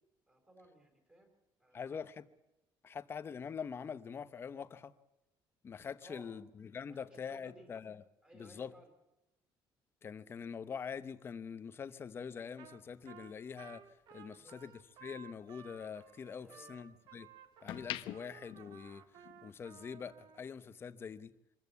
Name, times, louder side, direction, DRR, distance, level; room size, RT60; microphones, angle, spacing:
voice 1, 0.3-1.3 1.6-2.1 6.0-6.3 6.8-7.7 8.2-8.9 14.2-14.6 16.3-16.8, right 1 dB, 15° right, 4.6 m, -59 dB
voice 2, 1.7-2.3 2.8-4.9 5.6-8.0 8.3-8.7 10.0-13.8 14.1-14.7 15.0-17.3 17.6-19.1 19.4-21.3, left 6 dB, 25° left, 0.9 m, -44 dB
Trumpet, 12.6-12.8 13.1-20.4, right 8 dB, 65° right, 2.0 m, -56 dB
sound 1, 12.8-15.2 15.6-17.0 17.4-19.6 19.9-20.1, left 15 dB, 75° left, 0.9 m, -47 dB
25.0 x 14.0 x 8.3 m
cardioid pair, 170°, 9 cm